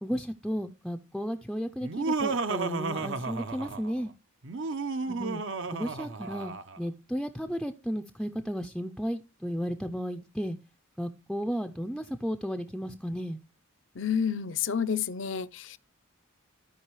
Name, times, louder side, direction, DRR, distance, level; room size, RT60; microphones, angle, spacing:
voice 1, 0.0-4.1 5.0-5.4 5.7-10.6 11.0-13.4, equal, ahead, 0.4 m, -34 dB
Laughter, 1.8-4.0 4.4-6.8, right 4 dB, 60° right, 0.7 m, -32 dB
voice 2, 14.0-15.8, left 7 dB, 60° left, 0.6 m, -29 dB
15.5 x 5.2 x 3.1 m
head